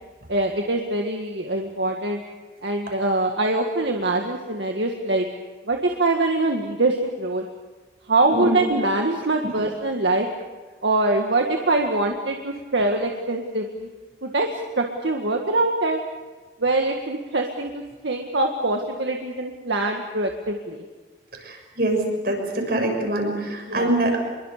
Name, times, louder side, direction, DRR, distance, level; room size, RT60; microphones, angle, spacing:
voice 1, 0.3-2.2 2.6-5.3 5.7-7.5 8.1-10.3 10.8-13.9 14.2-16.0 16.6-20.8 23.7-23.9, right 2 dB, 75° right, 2 dB, 1.9 m, -23 dB
voice 2, 21.5-24.2, right 1 dB, 55° right, 2 dB, 6.6 m, -24 dB
26.5 x 23.0 x 6.7 m, 1.3 s
head